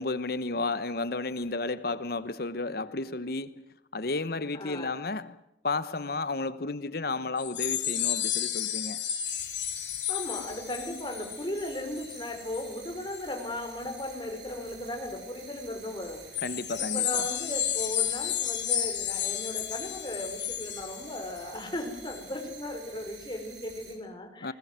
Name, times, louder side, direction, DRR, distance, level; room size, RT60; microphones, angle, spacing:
voice 1, 0.0-3.6 3.9-5.4 5.6-9.0 16.4-17.3 24.4-24.5, left 3 dB, 60° left, 1.1 m, -32 dB
voice 2, 4.5-4.9 10.1-16.4 16.8-24.5, left 1 dB, 25° left, 5.5 m, -37 dB
sound 1, 7.4-12.8 13.1-13.4 14.0-14.1 16.3-21.6 22.1-22.2, left 11 dB, 90° left, 2.9 m, -32 dB
jump-scare, 9.2-23.9, right 5 dB, 80° right, 7.7 m, -49 dB
21.0 x 20.5 x 9.5 m
head